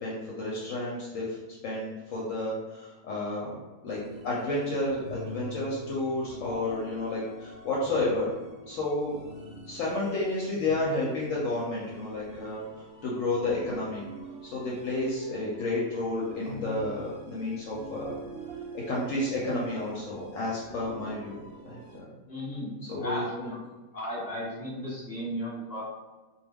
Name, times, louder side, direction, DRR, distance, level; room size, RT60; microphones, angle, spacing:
voice 1, 0.0-1.4 1.6-3.5 3.8-4.0 4.2-8.3 8.7-9.2 9.7-12.6 13.0-14.1 14.4-18.2 18.9-21.4 21.6-22.1 22.9-23.5, left 2 dB, 70° left, -5 dB, 0.9 m, -31 dB
sound 1, 3.9-22.0, right 1 dB, 85° right, 1.1 m, -45 dB
voice 2, 22.3-23.6 23.9-25.8, equal, 10° left, -8 dB, 0.9 m, -35 dB
2.2 x 2.2 x 3.4 m, 1.2 s
omnidirectional pair, 1.5 m